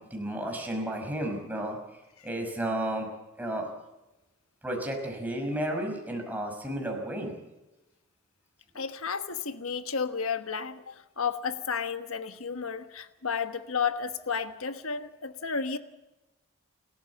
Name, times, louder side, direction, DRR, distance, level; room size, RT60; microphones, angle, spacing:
voice 1, 0.0-3.1 3.4-3.7 4.6-7.4, right 1 dB, 10° right, 2 dB, 5.6 m, -33 dB
voice 2, 8.7-15.8, left 6 dB, 75° left, 10 dB, 1.3 m, -32 dB
28.5 x 14.0 x 7.2 m, 1.0 s
head